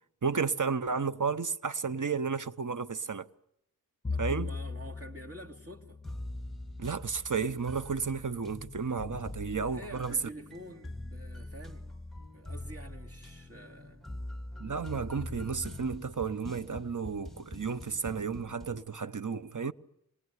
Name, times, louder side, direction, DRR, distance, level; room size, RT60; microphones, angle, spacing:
voice 1, 0.2-3.3 4.2-4.5 6.8-10.2 14.6-19.7, right 5 dB, 60° right, 0.9 m, -32 dB
Bowed string instrument, 4.1-8.4, left 4 dB, 20° left, 1.2 m, -40 dB
voice 2, 4.1-6.0 9.6-12.1 12.3-14.1, right 1 dB, 40° right, 2.9 m, -48 dB
sound 1, 6.0-18.8, left 1 dB, ahead, 2.4 m, -44 dB
26.5 x 20.0 x 9.6 m
wide cardioid pair, 40°, 35 cm